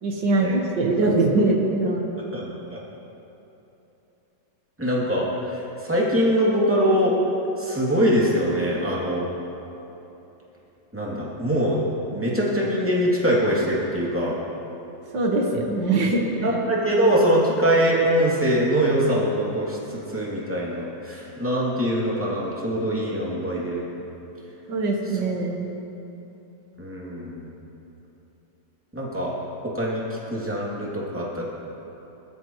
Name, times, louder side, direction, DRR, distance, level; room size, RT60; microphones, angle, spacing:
voice 1, 0.0-2.1 15.1-16.6 24.7-25.7, right 2 dB, 85° right, 0 dB, 2.1 m, -22 dB
voice 2, 2.3-2.8 4.8-7.2 7.6-9.3 10.9-11.8 12.1-14.4 16.4-23.9 26.8-27.5 28.9-29.3 29.6-31.4, equal, 5° right, -6 dB, 2.6 m, -23 dB
21.5 x 13.0 x 3.1 m, 3.0 s
omnidirectional pair, 1.9 m